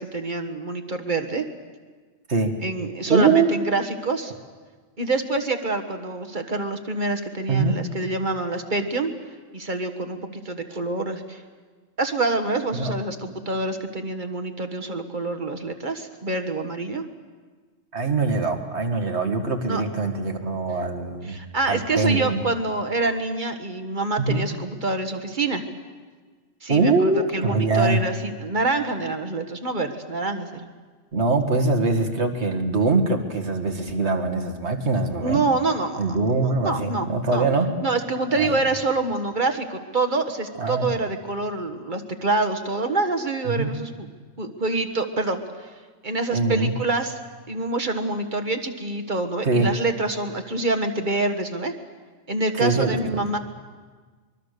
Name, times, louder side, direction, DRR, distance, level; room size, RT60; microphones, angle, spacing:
voice 1, 0.0-1.4 2.6-4.3 5.0-9.1 9.5-11.4 12.0-17.0 19.6-19.8 21.3-25.6 26.6-30.7 35.2-36.0 36.6-37.5 37.8-43.9 44.4-45.7 46.0-47.2 47.5-51.7 52.3-53.4, right 3 dB, 40° right, 7 dB, 1.6 m, -26 dB
voice 2, 3.1-3.5 7.5-7.8 12.7-13.0 17.9-21.3 21.7-22.4 24.2-24.5 26.7-28.0 31.1-35.4 36.0-37.7 38.3-38.5 40.6-40.9 43.5-43.7 46.3-46.7 49.4-49.7 52.6-53.0, right 3 dB, 70° right, 5 dB, 2.2 m, -23 dB
24.5 x 22.5 x 6.7 m, 1.4 s
omnidirectional pair, 1.2 m